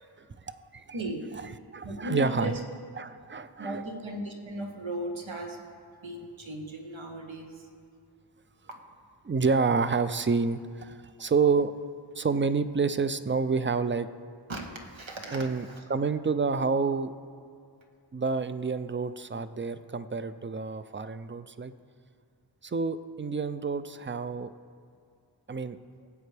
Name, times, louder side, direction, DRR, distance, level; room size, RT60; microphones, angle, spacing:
voice 1, 0.0-0.8 1.4-1.5 1.7-2.5 3.0-3.8 9.2-11.7 12.1-14.1 15.3-17.1 18.1-21.7 22.6-24.5 25.5-25.8, right 4 dB, 25° right, 12 dB, 0.4 m, -28 dB
voice 2, 0.9-1.2 1.8-2.6 3.6-5.6 6.0-7.7 14.5-15.8, right 1 dB, 85° right, 1 dB, 1.4 m, -37 dB
18.5 x 8.3 x 3.4 m, 2.3 s
wide cardioid pair, 60°, 46 cm